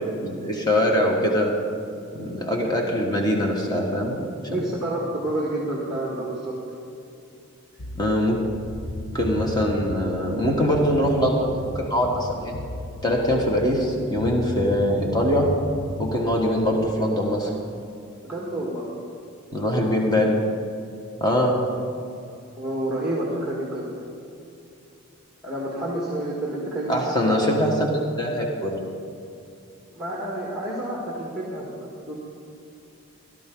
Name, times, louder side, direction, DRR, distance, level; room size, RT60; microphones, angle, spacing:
voice 1, 0.1-1.5 2.1-4.2 4.5-4.6 7.9-8.4 9.1-12.5 13.0-15.5 16.0-17.5 19.5-20.4 21.2-21.6 26.9-27.9 28.2-28.8, equal, 20° left, 0 dB, 1.6 m, -22 dB
voice 2, 4.4-6.6 18.2-18.8 22.6-23.9 25.4-27.4 29.9-32.2, right 1 dB, 5° right, -5 dB, 1.7 m, -29 dB
sound 1, 7.8-16.5, left 1 dB, 65° left, 0.9 m, -35 dB
17.5 x 13.0 x 3.9 m, 2.6 s
head